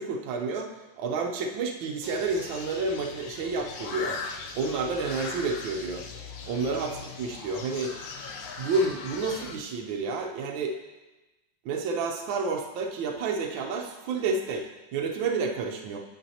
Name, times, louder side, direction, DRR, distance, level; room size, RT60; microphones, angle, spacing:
voice 1, 0.0-4.2 4.5-6.1 6.5-8.0 8.6-10.8 11.6-16.0, right 4 dB, 80° right, 1 dB, 1.5 m, -30 dB
sound 1, 2.0-9.6, left 5 dB, 75° left, 1.4 m, -39 dB
9.0 x 8.2 x 2.8 m, 1.1 s
omnidirectional pair, 2.1 m